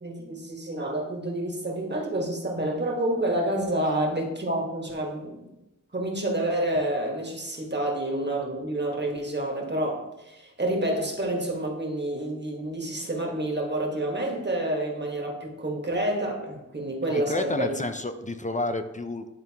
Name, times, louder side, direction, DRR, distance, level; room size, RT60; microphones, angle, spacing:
voice 1, 0.0-5.5 5.9-17.7, right 1 dB, 35° right, 1 dB, 1.5 m, -28 dB
voice 2, 17.1-19.3, left 2 dB, 25° left, 8 dB, 0.6 m, -30 dB
10.5 x 3.6 x 2.9 m, 0.95 s
cardioid pair, 50°, 32 cm